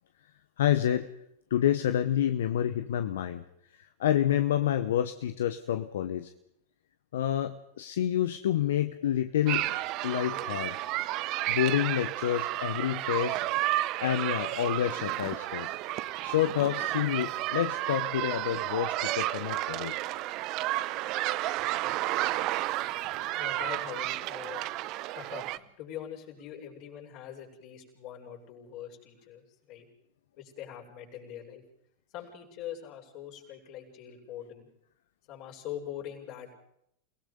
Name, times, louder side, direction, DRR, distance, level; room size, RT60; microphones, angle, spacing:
voice 1, 0.6-1.1 1.5-3.4 3.7-6.3 7.1-9.7 10.0-10.8 11.5-13.4 14.0-15.8 16.2-20.0, left 11 dB, 75° left, 10 dB, 1.0 m, -28 dB
sound 1, 9.5-25.6, right 16 dB, 50° right, 0.8 m, -32 dB
voice 2, 23.3-24.6 25.1-29.9 30.4-31.6 32.1-34.7 35.3-36.5, left 10 dB, 50° left, -1 dB, 7.0 m, -43 dB
29.0 x 18.5 x 5.5 m, 0.76 s
hypercardioid pair, 100°, 0 cm